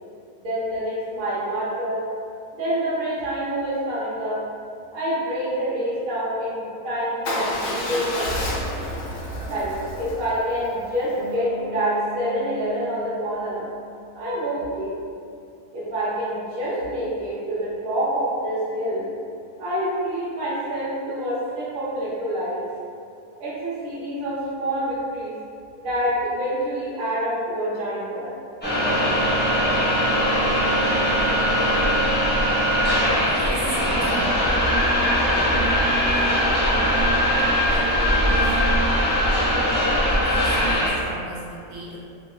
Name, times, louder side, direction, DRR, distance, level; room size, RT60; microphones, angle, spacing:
voice 1, 0.4-2.0 2.6-4.4 4.9-8.4 9.4-9.7 10.0-13.6 14.1-14.9 15.7-19.1 19.6-22.6 23.4-25.4 25.7-28.3, right 1 dB, 45° right, -9 dB, 0.9 m, -27 dB
Motorcycle / Engine starting / Idling, 7.3-11.4, left 1 dB, 85° left, 0.5 m, -30 dB
Bass guitar, 11.2-14.9, left 5 dB, 60° right, 1.1 m, -40 dB
sound 1, 28.6-40.9, equal, 15° left, 0.3 m, -20 dB
voice 2, 33.1-34.5 35.0-35.1 37.7-38.5 40.0-42.0, right 2 dB, 85° right, -6 dB, 1.2 m, -35 dB
2.8 x 2.1 x 3.1 m, 2.4 s
omnidirectional pair, 1.6 m